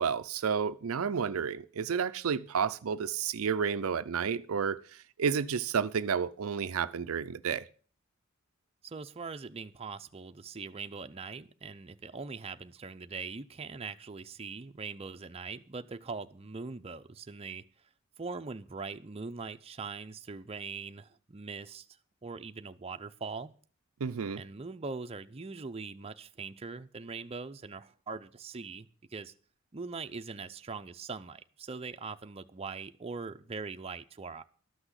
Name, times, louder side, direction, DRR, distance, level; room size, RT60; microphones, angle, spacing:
voice 1, 0.0-4.8 5.2-7.6 24.0-24.4, right 6 dB, 80° right, 0.5 m, -31 dB
voice 2, 8.8-17.6 18.2-21.9 22.2-23.5 24.4-29.3 29.7-34.4, right 4 dB, 30° right, 0.6 m, -41 dB
12.5 x 6.1 x 8.0 m
head